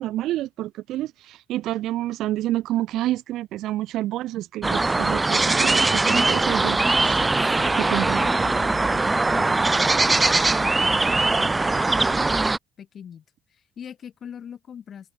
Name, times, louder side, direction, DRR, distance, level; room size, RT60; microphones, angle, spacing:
voice 1, 0.0-7.2 7.8-8.5, right 14 dB, 65° right, 1.1 m, -29 dB
sound 1, 4.6-12.6, right 3 dB, 15° right, 0.3 m, -21 dB
voice 2, 7.6-13.2 13.5-15.1, left 8 dB, 40° left, 6.8 m, -41 dB
cardioid pair, 150°, 0 cm